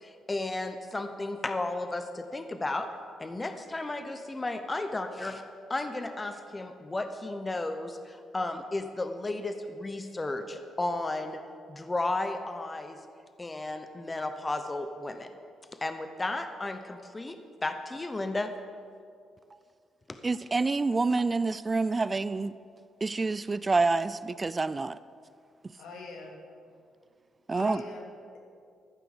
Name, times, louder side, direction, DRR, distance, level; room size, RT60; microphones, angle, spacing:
voice 1, 0.0-2.9 3.2-5.4 5.7-11.4 11.7-13.0 13.4-15.3 15.8-18.5, left 2 dB, 20° left, 8 dB, 0.7 m, -33 dB
voice 2, 20.2-22.5 23.0-25.0 27.5-27.8, right 3 dB, 25° right, 16 dB, 0.3 m, -27 dB
voice 3, 25.8-26.4 27.5-28.4, left 3 dB, 80° left, 0 dB, 2.3 m, -43 dB
14.5 x 5.9 x 6.8 m, 2.3 s
cardioid pair, 90°, 0 cm